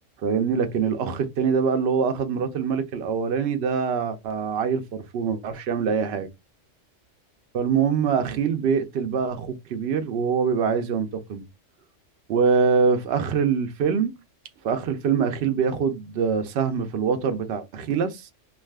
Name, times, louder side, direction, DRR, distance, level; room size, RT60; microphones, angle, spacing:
voice 1, 0.2-6.3 7.5-11.4 12.3-14.1 14.6-18.3, right 6 dB, 65° right, 0.7 m, -24 dB
2.4 x 2.4 x 3.3 m
omnidirectional pair, 1.3 m